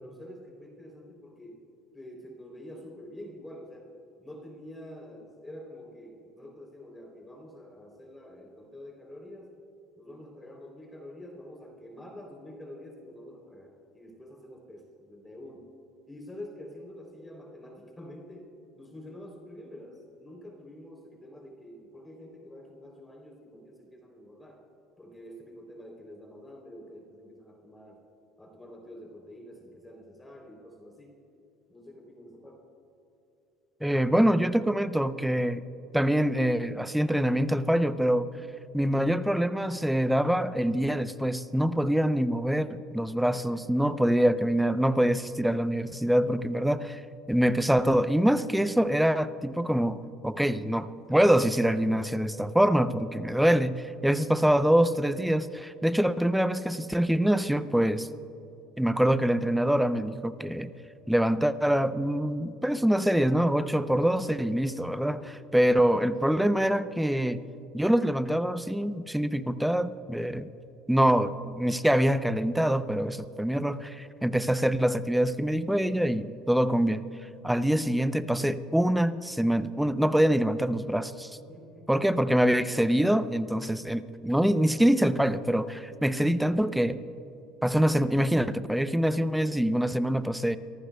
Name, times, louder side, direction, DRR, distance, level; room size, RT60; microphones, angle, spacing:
voice 1, 0.0-1.6 1.9-3.9 4.2-9.5 10.0-15.7 16.1-18.5 18.8-24.6 25.0-28.0 28.4-31.2 31.7-32.6 43.5-43.7 65.2-65.5 81.5-81.9, left 1 dB, 10° left, 0 dB, 3.4 m, -47 dB
voice 2, 33.8-35.6 35.9-38.3 38.7-47.0 47.3-58.1 58.8-60.7 61.1-67.4 67.7-70.5 70.9-77.0 77.4-81.3 81.9-87.0 87.6-90.6, equal, 5° right, 13 dB, 0.6 m, -25 dB
29.0 x 14.5 x 2.3 m, 3.0 s
supercardioid pair, 90°, 0 cm